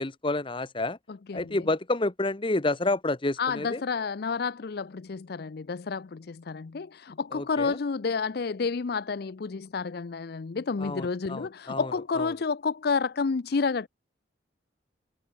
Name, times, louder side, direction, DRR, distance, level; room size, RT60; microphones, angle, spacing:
voice 1, 0.0-1.0 1.3-3.8 7.3-7.8 10.8-12.3, left 2 dB, 25° left, 0.9 m, -29 dB
voice 2, 1.1-1.7 3.4-13.9, left 5 dB, 55° left, 0.5 m, -30 dB
head